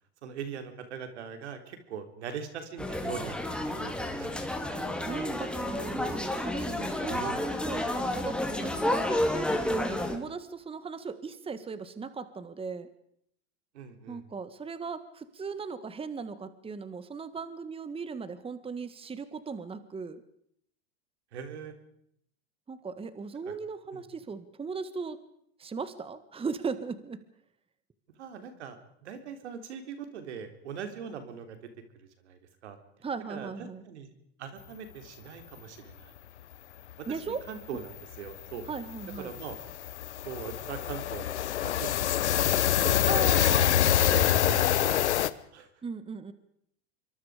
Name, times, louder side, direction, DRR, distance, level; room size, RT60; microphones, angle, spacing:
voice 1, 0.2-3.4 3.7-4.6 7.1-7.5 13.7-14.2 21.3-21.7 23.9-24.0 28.2-31.6 32.3-32.8 33.3-33.5 33.9-34.1 34.4-36.1 37.0-38.7 39.2-39.6 40.2-43.0 43.9-45.7, right 7 dB, 80° right, 7 dB, 3.8 m, -41 dB
sound 1, 2.8-10.2, left 1 dB, 5° left, 3.1 m, -31 dB
voice 2, 5.0-12.9 14.1-20.2 22.7-25.2 25.6-27.2 33.0-33.8 37.1-37.5 38.6-39.3 43.1-43.9 45.8-46.3, right 5 dB, 15° right, 13 dB, 1.6 m, -38 dB
sound 2, 36.9-37.0 37.3-37.5 37.8-45.3, left 11 dB, 90° left, 1.1 m, -26 dB
26.0 x 23.5 x 5.1 m, 0.71 s
hypercardioid pair, 105°, 33 cm